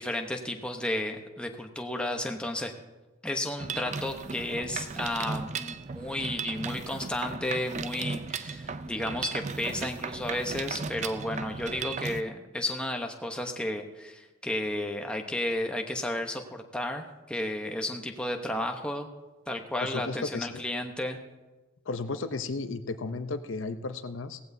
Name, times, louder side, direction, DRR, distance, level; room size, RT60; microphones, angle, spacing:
voice 1, 0.0-2.7 3.2-19.1 19.5-21.2, left 1 dB, 5° left, 3 dB, 0.9 m, -33 dB
Mechanisms, 3.6-12.2, right 5 dB, 35° right, 0.4 m, -36 dB
voice 2, 19.8-20.6 21.9-24.4, left 3 dB, 70° left, 9 dB, 0.7 m, -34 dB
17.5 x 15.0 x 2.7 m, 1.2 s
head